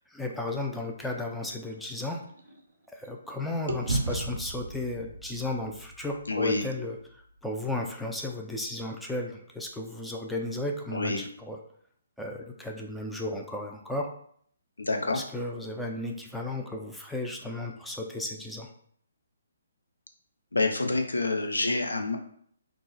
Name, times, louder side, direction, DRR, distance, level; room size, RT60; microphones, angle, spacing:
voice 1, 0.0-2.2 2.9-11.6 12.2-14.1 14.9-18.7, left 2 dB, ahead, 0 dB, 0.3 m, -34 dB
sound 1, 1.0-3.3 3.7-7.9, right 2 dB, 70° right, 0.5 m, -37 dB
voice 2, 6.3-6.6 10.9-11.2 14.8-15.2 20.5-22.2, left 3 dB, 85° left, 4 dB, 0.5 m, -27 dB
2.4 x 2.0 x 3.8 m, 0.62 s
figure-of-eight pair, 140°, 0 cm